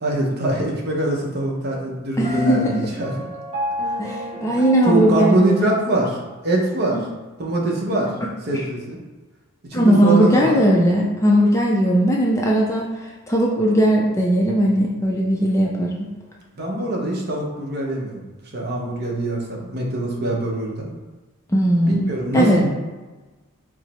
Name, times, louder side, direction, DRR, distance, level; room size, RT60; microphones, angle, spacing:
voice 1, 0.0-3.1 4.8-6.2 6.4-7.0 7.4-8.1 8.4-9.0 9.7-10.6 16.6-20.9 21.9-22.7, right 1 dB, 45° right, -1 dB, 0.7 m, -23 dB
voice 2, 2.2-2.9 4.0-5.7 6.9-7.0 8.5-8.6 9.7-12.9 13.3-16.1 21.5-22.0 22.3-22.6, right 1 dB, 15° left, -2 dB, 0.3 m, -18 dB
Piano, 2.2-6.1, left 1 dB, 25° right, 1.1 m, -31 dB
4.7 x 2.0 x 4.1 m, 1.3 s
head